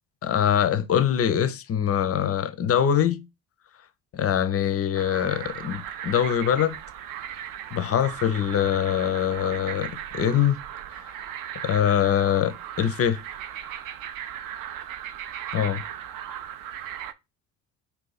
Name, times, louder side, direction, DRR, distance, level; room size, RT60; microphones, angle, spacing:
voice 1, 0.2-3.2 4.1-6.8 7.7-10.6 11.6-13.2 15.5-15.8, left 9 dB, 30° left, 0.5 m, -23 dB
sound 1, 4.9-17.1, right 10 dB, 50° right, 0.5 m, -37 dB
2.6 x 2.3 x 4.0 m
hypercardioid pair, 60°, 47 cm